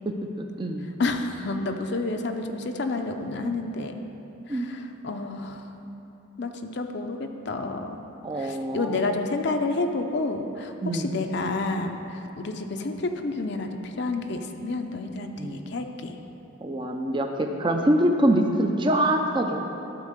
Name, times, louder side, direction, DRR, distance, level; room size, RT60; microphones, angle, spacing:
voice 1, 0.1-0.9 4.5-4.8 8.2-8.9 10.8-11.1 15.4-15.6 16.6-19.7, right 1 dB, 25° right, 3 dB, 0.5 m, -25 dB
voice 2, 1.0-4.1 4.5-5.7 6.4-8.0 8.4-16.2 18.4-18.7, left 3 dB, 55° left, 5 dB, 0.6 m, -30 dB
11.5 x 4.6 x 6.5 m, 3.0 s
head